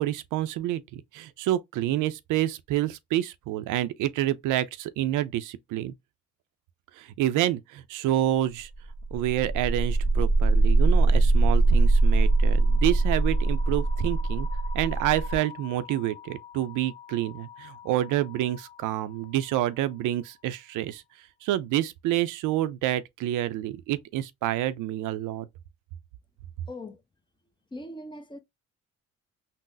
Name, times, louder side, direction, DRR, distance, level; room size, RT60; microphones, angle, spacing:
voice 1, 0.0-5.9 6.9-8.7 9.1-14.5 14.7-25.5, right 13 dB, 85° right, 0.5 m, -28 dB
Auditory Hallucination, 8.8-18.7, right 2 dB, 55° left, 1.3 m, -24 dB
voice 2, 26.7-27.0 27.7-28.4, left 1 dB, 15° left, 0.6 m, -40 dB
3.8 x 2.0 x 2.5 m
cardioid pair, 90°, 30 cm